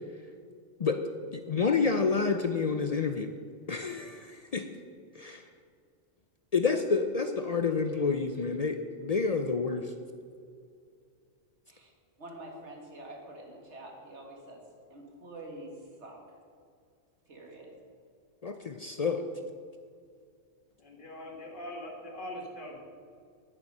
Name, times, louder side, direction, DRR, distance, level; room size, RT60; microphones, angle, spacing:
voice 1, 1.5-3.3 3.7-4.6 5.2-5.4 6.5-9.9 18.4-19.2, left 4 dB, 60° left, 7 dB, 0.4 m, -28 dB
voice 2, 12.2-14.6 14.9-16.2 17.3-17.7, right 1 dB, 60° right, 0 dB, 2.2 m, -46 dB
voice 3, 20.8-22.8, left 1 dB, 40° left, -1 dB, 1.8 m, -42 dB
10.0 x 9.0 x 5.4 m, 2.2 s
omnidirectional pair, 1.3 m